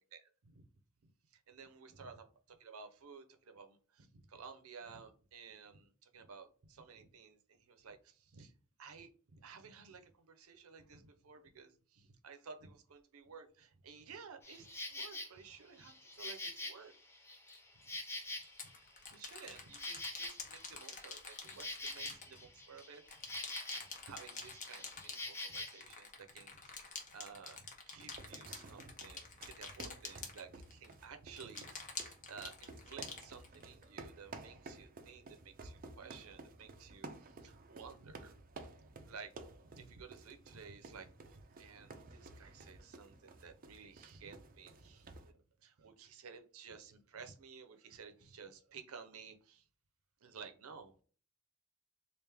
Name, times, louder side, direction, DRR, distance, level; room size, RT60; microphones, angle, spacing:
voice 1, 0.1-0.7 1.0-8.5 8.8-16.4 16.7-16.9 19.1-23.5 24.0-38.4 38.6-39.3 39.6-49.7 50.2-51.0, right 5 dB, 90° right, 7 dB, 0.6 m, -54 dB
Insect, 14.4-15.3 15.8-18.8 19.2-24.0 24.3-25.8, left 2 dB, 10° left, 0.6 m, -45 dB
sound 1, 17.5-17.6 18.4-22.8 23.1-30.9 31.4-33.8, left 4 dB, 40° left, 0.8 m, -48 dB
sound 2, 28.1-45.3, right 3 dB, 45° right, 0.4 m, -54 dB
3.4 x 2.5 x 3.3 m, 0.41 s
head